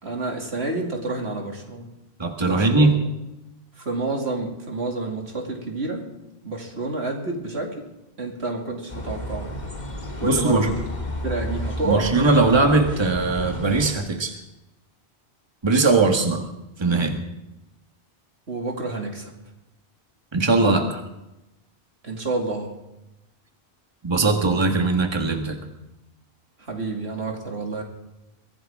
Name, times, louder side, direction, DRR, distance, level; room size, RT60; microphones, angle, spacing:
voice 1, 0.0-1.9 2.4-3.0 3.8-6.1 6.4-7.8 8.2-9.5 10.2-10.9 11.2-12.1 18.5-19.3 22.0-22.7 26.6-27.8, right 2 dB, 75° right, 1 dB, 2.9 m, -29 dB
voice 2, 2.2-3.0 10.2-10.7 11.8-14.4 15.6-16.5 16.8-17.2 20.3-21.0 24.0-25.6, right 3 dB, 25° right, 4 dB, 1.6 m, -20 dB
sound 1, 8.9-13.9, left 1 dB, 40° left, 2.2 m, -32 dB
23.0 x 15.5 x 3.7 m, 0.93 s
omnidirectional pair, 1.1 m